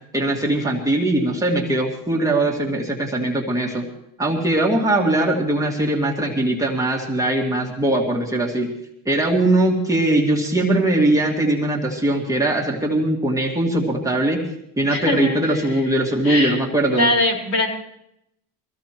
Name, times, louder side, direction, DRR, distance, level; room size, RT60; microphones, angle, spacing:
voice 1, 0.1-3.8 4.2-8.7 9.1-14.4 14.8-17.1, right 1 dB, 10° right, -2 dB, 2.2 m, -20 dB
voice 2, 14.9-15.7 16.2-17.7, left 1 dB, 50° left, 0 dB, 4.8 m, -22 dB
23.0 x 16.0 x 3.1 m, 0.77 s
cardioid pair, 120°, 37 cm